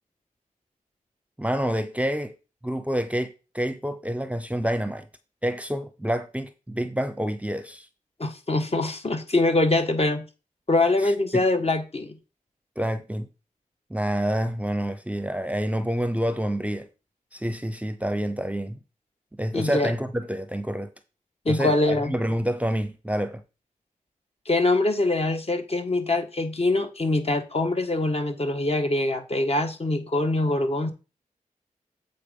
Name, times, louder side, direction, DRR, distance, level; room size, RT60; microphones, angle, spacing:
voice 1, 1.4-2.3 2.6-5.1 5.4-7.9 11.0-11.4 12.8-13.3 13.9-16.9 17.3-18.8 19.4-20.9 21.5-23.4, equal, 10° right, 0.8 m, -28 dB
voice 2, 8.2-10.3 10.7-12.2 19.5-19.9 21.4-22.1 24.4-30.9, left 2 dB, 45° left, 1.6 m, -24 dB
8.3 x 4.0 x 5.3 m
cardioid pair, 50°, 15 cm